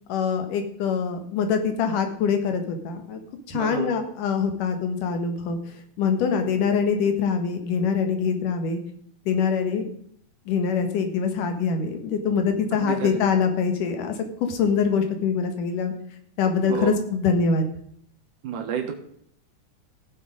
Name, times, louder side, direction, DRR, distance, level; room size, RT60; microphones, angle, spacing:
voice 1, 0.1-3.2 3.5-5.6 6.0-8.8 9.3-9.9 10.5-14.1 14.5-15.9 16.4-17.6, left 6 dB, 90° left, 7 dB, 3.2 m, -24 dB
voice 2, 3.5-3.9 12.7-13.2 16.7-17.0 18.4-18.9, right 7 dB, 85° right, 2 dB, 2.9 m, -29 dB
16.0 x 7.4 x 5.1 m, 0.65 s
omnidirectional pair, 3.6 m